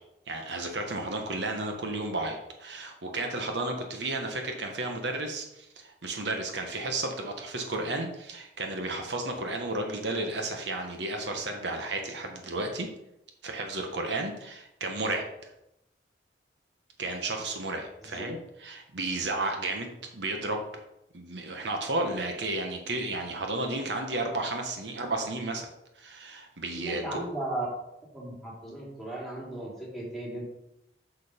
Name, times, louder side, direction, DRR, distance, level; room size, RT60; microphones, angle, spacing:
voice 1, 0.3-12.9 13.4-15.5 17.0-20.6 21.1-25.7 26.0-27.2, right 2 dB, 80° right, 3 dB, 1.3 m, -33 dB
voice 2, 18.0-18.3 26.8-27.7 28.1-30.5, right 2 dB, ahead, -5 dB, 3.0 m, -36 dB
6.7 x 6.6 x 5.2 m, 0.86 s
head